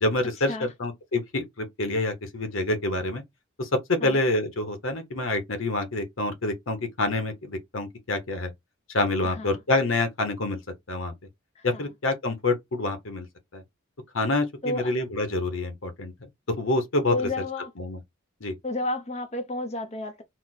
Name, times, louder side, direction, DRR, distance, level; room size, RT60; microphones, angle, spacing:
voice 1, 0.0-3.2 3.6-8.5 8.9-10.6 10.9-11.1 11.6-13.3 13.5-13.6 14.1-16.3 16.6-17.3 17.8-18.0 18.4-18.5, left 2 dB, 75° left, 1.1 m, -27 dB
voice 2, 9.2-9.6 11.6-11.9 14.6-14.9 17.1-17.7 18.6-20.2, left 2 dB, 30° left, 0.7 m, -31 dB
4.3 x 2.1 x 4.1 m
head